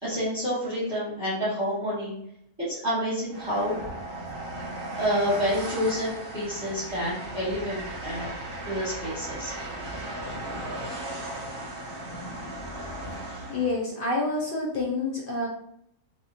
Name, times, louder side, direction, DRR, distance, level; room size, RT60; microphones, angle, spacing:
voice 1, 0.0-2.1 2.7-3.8 4.7-8.3 8.6-9.5 9.8-9.9 13.2-13.5, equal, 20° right, -11 dB, 0.9 m, -29 dB
Train, 3.3-13.8, right 1 dB, 50° right, 0.8 m, -36 dB
voice 2, 13.5-15.5, left 2 dB, 60° left, -2 dB, 0.6 m, -28 dB
2.8 x 2.4 x 2.6 m, 0.72 s
omnidirectional pair, 1.4 m